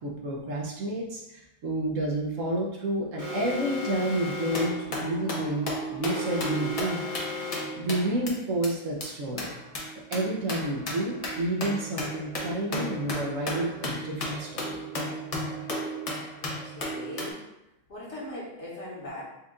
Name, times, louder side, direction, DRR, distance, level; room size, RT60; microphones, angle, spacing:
voice 1, 0.0-7.0 7.7-9.5 10.1-14.8, right 1 dB, 65° right, -2 dB, 1.1 m, -30 dB
Alarm, 3.2-4.9 6.1-7.9, left 4 dB, 40° right, 0.8 m, -35 dB
sound 1, 4.5-8.3 8.6-8.7 9.0-9.1 9.4-17.3, equal, 40° left, 0.5 m, -34 dB
voice 2, 16.4-17.4 17.9-19.2, left 1 dB, 55° left, -6 dB, 1.6 m, -40 dB
4.5 x 2.4 x 3.7 m, 0.88 s
omnidirectional pair, 1.5 m